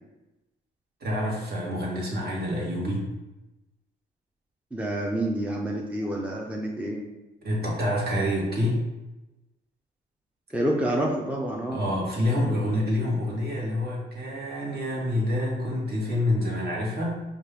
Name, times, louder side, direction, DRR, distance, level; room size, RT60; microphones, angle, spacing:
voice 1, 1.0-3.1 7.4-8.8 11.7-17.2, left 1 dB, 55° right, -3 dB, 1.4 m, -27 dB
voice 2, 4.7-7.0 10.5-11.8, right 1 dB, 5° right, -1 dB, 0.5 m, -28 dB
5.2 x 2.4 x 3.3 m, 1.0 s
cardioid pair, 90°, 20 cm